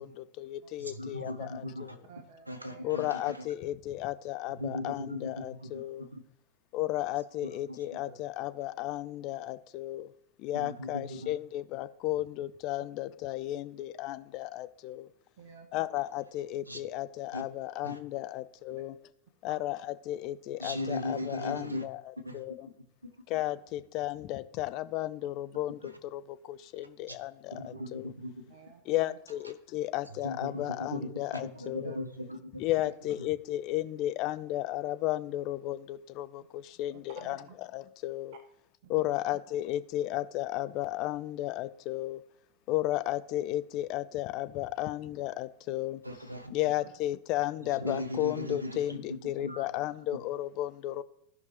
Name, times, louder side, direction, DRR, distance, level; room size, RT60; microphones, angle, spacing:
voice 1, 0.0-2.0 2.8-6.1 6.7-10.1 10.4-15.1 15.7-19.0 19.4-22.7 23.3-28.1 28.9-32.0 32.6-38.3 38.9-42.2 42.7-46.0 46.5-51.0, left 15 dB, 40° left, 13 dB, 0.4 m, -34 dB
voice 2, 0.8-2.0 2.5-3.4 4.6-5.8 6.1-6.2 8.0-8.1 10.5-11.3 16.7-16.8 17.3-17.4 17.8-18.0 20.6-21.9 22.2-22.4 27.5-28.3 30.2-32.6 46.0-46.5 47.8-49.0 49.4-49.6, left 1 dB, 85° right, 7 dB, 0.9 m, -38 dB
voice 3, 2.1-3.0 15.4-15.7 19.5-19.6 28.5-29.2 31.8-32.0 32.8-32.9 36.9-37.4 38.8-39.1 46.6-46.7, right 5 dB, 55° right, 8 dB, 0.9 m, -52 dB
14.0 x 5.3 x 3.1 m, 0.76 s
figure-of-eight pair, 90°, 0 cm